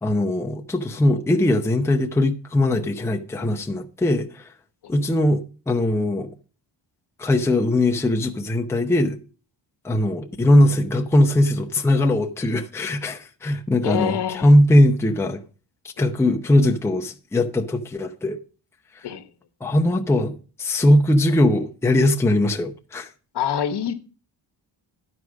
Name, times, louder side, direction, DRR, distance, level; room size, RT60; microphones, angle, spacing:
voice 1, 0.0-4.5 4.9-6.3 7.2-9.2 9.8-15.4 16.0-18.4 19.6-23.1, left 1 dB, 5° left, 0.6 m, -20 dB
voice 2, 13.8-14.5 16.0-16.1 19.0-19.3 23.3-23.9, left 9 dB, 60° left, 1.1 m, -25 dB
11.0 x 4.8 x 6.2 m
wide cardioid pair, 140°, 45 cm